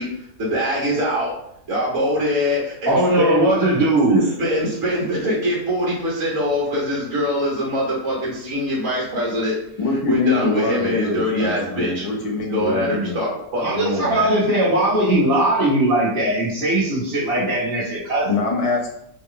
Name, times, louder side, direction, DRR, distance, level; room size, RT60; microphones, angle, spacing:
voice 1, 0.0-1.3 1.7-3.5 4.1-9.6 10.1-12.1 12.5-14.3, equal, 55° right, -6 dB, 1.4 m, -23 dB
voice 2, 2.9-4.3 13.6-18.3, right 1 dB, 40° right, -11 dB, 1.2 m, -19 dB
voice 3, 9.8-13.2 18.3-18.9, left 3 dB, 50° left, 0 dB, 0.4 m, -23 dB
4.4 x 2.3 x 3.6 m, 0.74 s
omnidirectional pair, 1.7 m